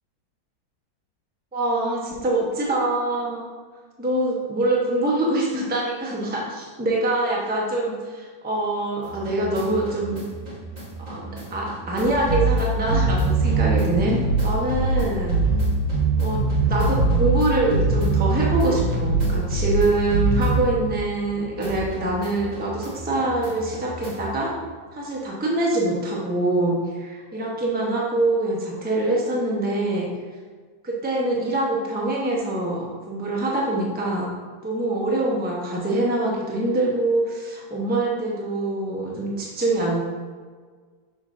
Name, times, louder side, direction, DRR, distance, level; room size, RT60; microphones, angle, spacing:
voice 1, 1.5-3.5 4.0-10.2 11.1-15.4 16.2-16.4 16.7-24.5 24.9-30.1 30.8-34.3 34.6-40.0, right 2 dB, 10° right, -3 dB, 0.6 m, -24 dB
sound 1, 9.0-21.3 21.6-24.4, right 3 dB, 30° right, 1.1 m, -24 dB
6.5 x 6.1 x 2.6 m, 1.5 s
omnidirectional pair, 2.0 m